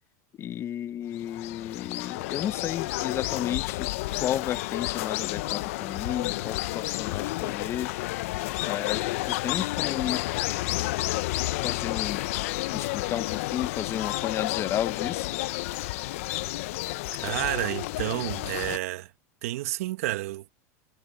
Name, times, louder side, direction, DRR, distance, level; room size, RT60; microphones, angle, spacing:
voice 1, 0.4-3.9 4.2-7.9 8.6-10.2 11.5-12.2 12.7-15.3, left 11 dB, 35° left, 1.4 m, -33 dB
sound 1, 1.1-18.8, left 19 dB, 70° left, 0.7 m, -31 dB
voice 2, 17.1-19.1 19.4-20.5, right 17 dB, 75° right, 1.7 m, -30 dB
supercardioid pair, 115°, 8 cm